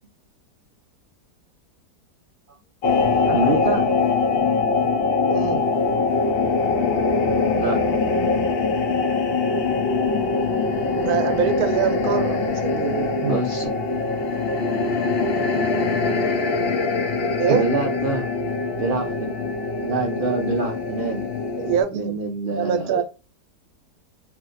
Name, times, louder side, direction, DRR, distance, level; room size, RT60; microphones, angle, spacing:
sound 1, 2.8-21.8, left 4 dB, 70° left, 0.5 m, -23 dB
voice 1, 3.3-3.9 7.6-7.8 13.2-14.1 17.5-18.3 18.8-19.3 19.8-21.3 21.9-23.0, right 3 dB, 90° right, 0.4 m, -25 dB
voice 2, 5.3-5.7 11.0-13.4 17.4-17.7 21.6-22.1 22.5-23.0, right 8 dB, 70° right, 1.0 m, -24 dB
3.3 x 2.7 x 2.5 m
omnidirectional pair, 1.8 m